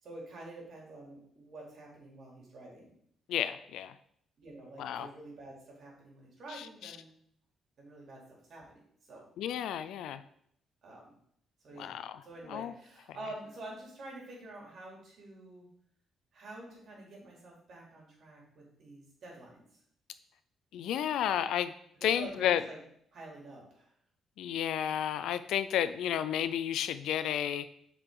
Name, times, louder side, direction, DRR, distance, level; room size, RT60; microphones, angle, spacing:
voice 1, 0.0-2.9 4.4-7.1 7.8-8.8 9.1-9.3 10.8-11.2 11.6-12.0 12.2-15.7 16.3-19.6 22.0-22.8 23.1-23.9, right 2 dB, 60° right, -2 dB, 3.0 m, -48 dB
voice 2, 3.3-3.9 4.8-5.1 6.8-6.9 9.4-10.2 11.8-12.2 12.5-12.7 20.7-21.7 22.0-22.6 24.4-27.7, left 10 dB, 80° left, 13 dB, 0.4 m, -31 dB
7.6 x 4.9 x 3.8 m, 0.67 s
cardioid pair, 90°, 0 cm